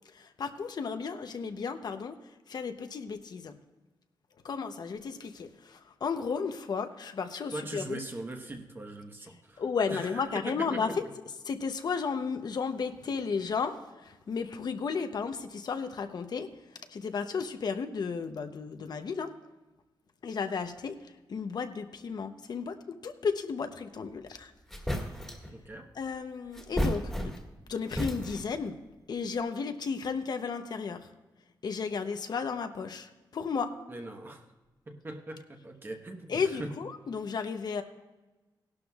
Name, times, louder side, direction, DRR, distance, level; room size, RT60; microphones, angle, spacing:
voice 1, 0.1-2.2 2.5-3.6 4.4-8.0 9.6-11.0 11.4-19.3 20.2-24.5 25.9-27.4 27.7-28.8 29.1-31.1 31.6-33.7 36.3-37.8, left 5 dB, 60° left, 7 dB, 0.7 m, -34 dB
voice 2, 7.5-9.6 9.9-10.8 25.5-25.9 33.9-34.5 34.9-36.7, right 2 dB, 25° right, 4 dB, 1.2 m, -41 dB
sound 1, 24.2-24.3 24.7-25.5 26.5-27.6 27.9-28.6, equal, 5° left, 1.8 m, -33 dB
17.5 x 11.5 x 2.4 m, 1.1 s
wide cardioid pair, 140°, 8 cm